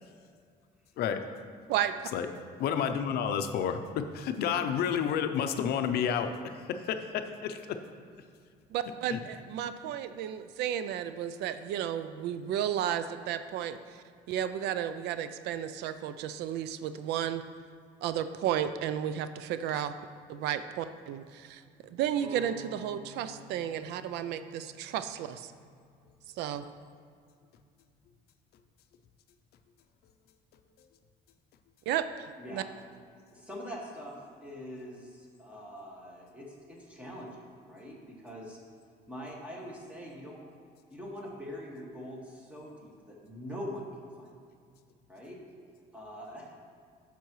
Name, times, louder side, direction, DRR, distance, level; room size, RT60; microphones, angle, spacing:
voice 1, 1.7-2.1 8.7-17.4 18.0-19.9 20.3-25.5 26.4-26.6 31.9-32.6, right 10 dB, 80° right, 11 dB, 0.4 m, -33 dB
voice 2, 2.6-7.8 9.1-9.2 9.8-9.9, left 8 dB, 70° left, 8 dB, 0.5 m, -30 dB
sound 1, 22.2-26.0, right 2 dB, 25° right, 2.0 m, -50 dB
voice 3, 33.3-38.6 39.1-40.4 40.9-44.3 45.1-45.4 45.9-46.5, equal, 10° right, -3 dB, 1.8 m, -43 dB
9.9 x 6.8 x 3.1 m, 2.2 s
cardioid pair, 110°, 17 cm